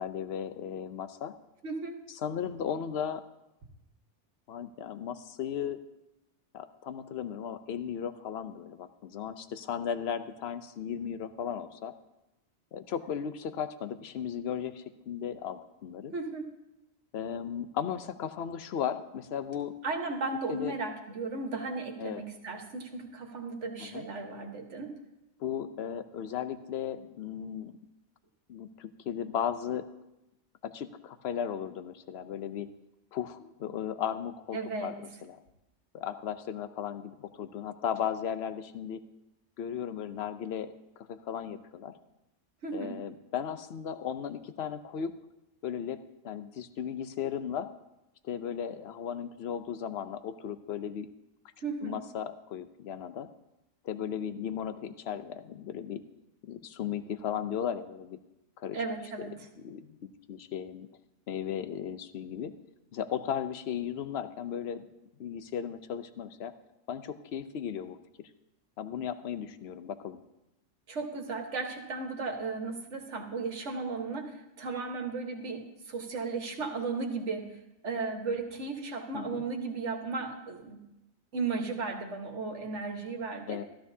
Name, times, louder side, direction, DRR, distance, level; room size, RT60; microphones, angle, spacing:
voice 1, 0.0-1.3 2.2-3.2 4.5-5.8 6.5-11.9 12.7-16.1 17.1-19.7 20.6-20.7 22.0-22.2 23.8-24.0 25.4-27.8 28.5-29.9 30.6-32.7 33.1-34.9 35.2-35.4 35.9-39.0 39.6-41.9 42.7-45.1 45.6-46.0 46.2-47.7 48.2-51.1 51.8-53.3 53.8-56.0 56.5-58.2 58.6-58.8 59.2-59.3 59.6-60.9 61.3-62.5 62.9-64.8 65.2-66.5 66.9-68.3 68.8-70.2 79.1-79.4 83.5-83.6, left 8 dB, 60° left, 11 dB, 0.9 m, -36 dB
voice 2, 1.6-2.0 16.1-16.5 19.8-24.9 34.5-35.0 42.6-43.0 51.6-52.0 58.7-59.3 70.9-77.5 77.8-80.8 81.3-83.6, right 4 dB, 70° right, 4 dB, 1.6 m, -35 dB
15.0 x 13.0 x 2.7 m, 0.94 s
omnidirectional pair, 1.3 m